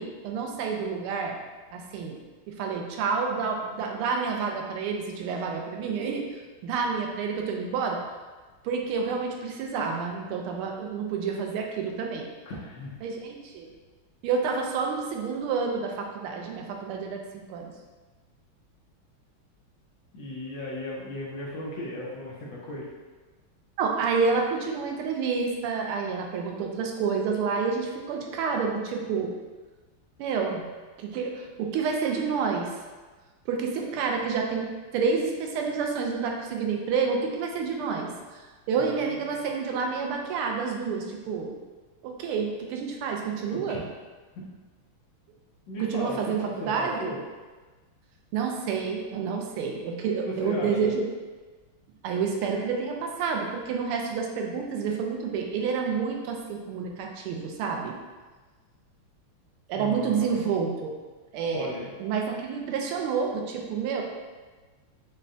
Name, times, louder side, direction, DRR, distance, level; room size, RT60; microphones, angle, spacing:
voice 1, 0.0-1.4 1.7-2.2 2.5-6.3 6.6-8.0 8.6-12.3 13.0-13.7 14.2-17.2 17.5-17.7 23.8-29.3 30.2-30.6 31.0-32.7 33.5-38.4 38.7-41.6 42.0-43.8 45.8-47.0 48.3-51.1 52.0-58.0 59.7-61.0 61.3-61.7 62.0-64.0, right 5 dB, 85° right, 1 dB, 1.5 m, -29 dB
voice 2, 12.5-12.9 20.1-22.9 38.8-39.4 43.5-43.8 44.3-44.5 45.7-47.2 50.1-50.9 59.8-60.4 61.5-61.9, left 1 dB, 70° left, -4 dB, 1.4 m, -36 dB
6.3 x 2.2 x 2.6 m, 1.3 s
omnidirectional pair, 2.4 m